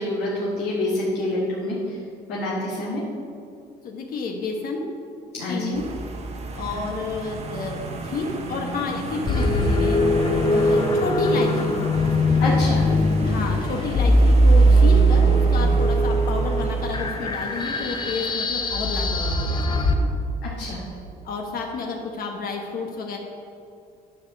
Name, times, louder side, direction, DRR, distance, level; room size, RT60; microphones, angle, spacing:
voice 1, 0.0-2.0 2.3-3.0 5.3-5.7 6.7-6.8 12.4-12.9 20.4-20.8, left 1 dB, 85° left, -8 dB, 2.1 m, -27 dB
voice 2, 3.8-4.9 5.5-5.9 6.5-10.0 10.5-11.7 13.2-20.2 21.2-23.2, left 3 dB, 60° left, 2 dB, 1.2 m, -30 dB
sound 1, 5.7-18.3, right 3 dB, 40° right, 1.0 m, -34 dB
sound 2, 9.3-19.9, right 1 dB, 25° left, 0.8 m, -20 dB
10.0 x 5.2 x 6.7 m, 2.5 s
cardioid pair, 110°, 17 cm